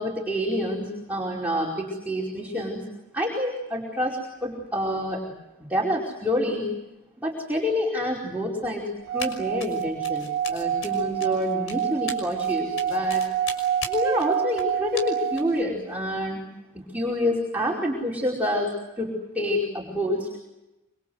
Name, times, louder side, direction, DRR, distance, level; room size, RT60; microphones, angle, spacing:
voice 1, 0.0-2.9 3.1-5.3 5.6-6.7 7.2-13.2 13.9-16.4 16.7-20.4, left 1 dB, 5° right, -4 dB, 4.9 m, -27 dB
Singing / Glass, 9.0-15.6, right 10 dB, 45° right, 1.5 m, -28 dB
Run, 9.2-9.3 9.6-15.6, left 4 dB, 65° left, 5.8 m, -38 dB
26.5 x 25.5 x 7.9 m, 0.96 s
head